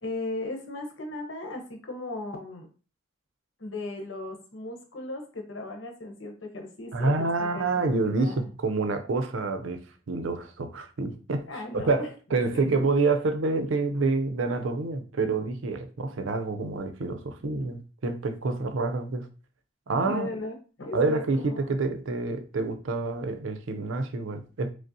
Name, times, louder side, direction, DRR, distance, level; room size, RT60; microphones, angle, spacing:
voice 1, 0.0-2.7 3.6-8.5 11.5-12.1 12.5-12.8 17.5-17.7 20.0-21.6, left 2 dB, 75° left, 1.0 m, -37 dB
voice 2, 6.9-9.8 10.1-19.3 19.9-20.3 20.9-24.7, right 3 dB, 80° right, 0.5 m, -27 dB
5.0 x 2.0 x 2.7 m
head